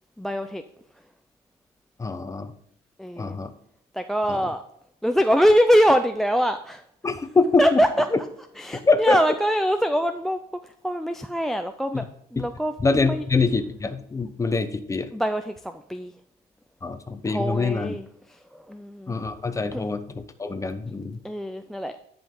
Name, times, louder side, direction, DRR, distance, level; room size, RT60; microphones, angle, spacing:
voice 1, 0.2-0.6 3.0-3.4 3.9-4.6 5.0-6.8 7.6-8.1 8.6-12.7 13.1-13.2 15.1-16.1 17.2-19.2 19.7-19.9 21.2-22.0, equal, ahead, 9 dB, 0.4 m, -23 dB
voice 2, 2.0-2.5 3.2-3.5 4.3-4.4 7.0-7.8 8.8-9.2 11.9-12.1 12.4-12.5 12.8-15.1 16.8-17.9 19.1-21.2, left 4 dB, 20° left, 10 dB, 0.8 m, -24 dB
10.5 x 5.2 x 3.8 m, 0.71 s
cardioid pair, 110°, 17 cm